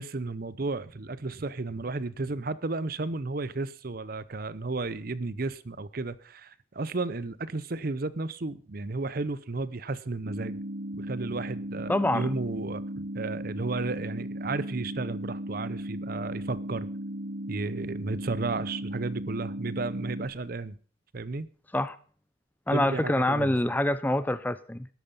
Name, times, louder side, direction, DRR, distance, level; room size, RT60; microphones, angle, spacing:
voice 1, 0.0-10.6 11.0-16.9 17.5-20.8 21.1-21.5 22.7-23.6, right 3 dB, 50° right, 0.7 m, -33 dB
sound 1, 10.3-20.3, right 1 dB, 75° right, 1.5 m, -36 dB
voice 2, 11.9-12.3 21.7-22.0 22.7-24.9, left 1 dB, 10° left, 0.5 m, -26 dB
13.0 x 11.0 x 5.5 m
head